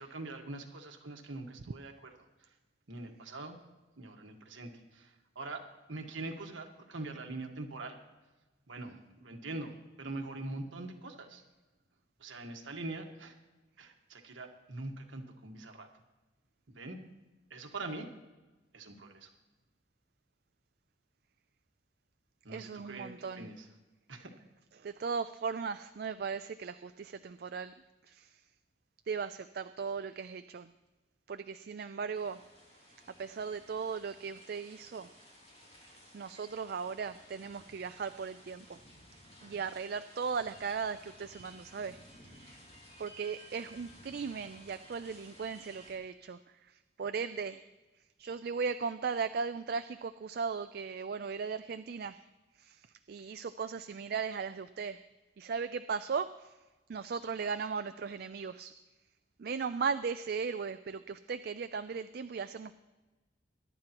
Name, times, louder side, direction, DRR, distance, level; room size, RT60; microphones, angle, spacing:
voice 1, 0.0-2.5 2.9-3.6 4.0-8.0 8.7-11.4 12.2-13.4 13.8-15.9 16.7-17.0 17.5-18.1 18.7-19.3 22.4-23.7 24.1-24.3, right 2 dB, 80° right, 3 dB, 1.5 m, -43 dB
voice 2, 22.5-23.5 24.8-27.7 28.1-28.3 29.1-30.7 31.3-32.4 33.2-35.1 36.1-38.8 39.4-42.0 43.0-46.4 47.0-47.6 48.2-52.2 52.6-52.8 53.1-55.0 55.4-56.3 56.9-58.7 59.4-62.7, right 5 dB, 50° right, 11 dB, 0.4 m, -37 dB
sound 1, 32.1-45.9, equal, 35° left, 4.8 m, -56 dB
22.0 x 11.5 x 3.0 m, 1.1 s
head